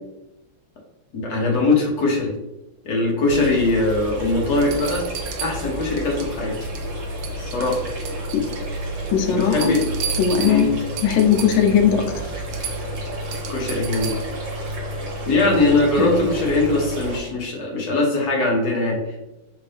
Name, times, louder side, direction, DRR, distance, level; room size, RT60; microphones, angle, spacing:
voice 1, 1.1-2.3 2.8-5.1 5.4-6.7 7.4-7.8 9.3-9.8 10.5-10.7 13.5-14.2 15.2-19.2, left 2 dB, 60° left, -1 dB, 1.2 m, -21 dB
sound 1, 3.3-17.2, equal, 55° right, 1.5 m, -30 dB
sound 2, 4.6-6.3 6.6-7.0 7.2-8.7 9.1-11.8 12.1-12.2 12.5-14.4 16.1-16.2, right 8 dB, 80° right, 1.4 m, -34 dB
voice 2, 9.1-9.7 10.2-10.7 11.0-12.0 16.0-16.3, left 7 dB, 85° left, 5 dB, 1.4 m, -18 dB
3.6 x 2.6 x 3.2 m, 0.95 s
omnidirectional pair, 2.3 m